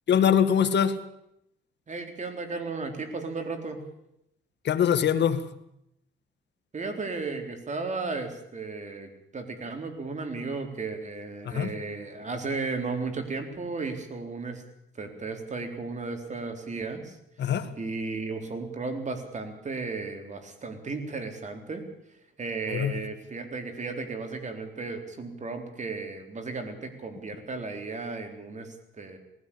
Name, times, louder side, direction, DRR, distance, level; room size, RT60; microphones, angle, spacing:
voice 1, 0.1-1.0 4.7-5.5 11.5-11.7 17.4-17.7 22.7-22.9, left 8 dB, 60° left, 11 dB, 1.7 m, -23 dB
voice 2, 1.9-3.8 6.7-14.6 14.9-17.2 17.4-21.8 22.4-29.2, right 3 dB, 35° right, 6 dB, 3.9 m, -35 dB
19.5 x 16.0 x 8.7 m, 0.80 s
cardioid pair, 90°, 20 cm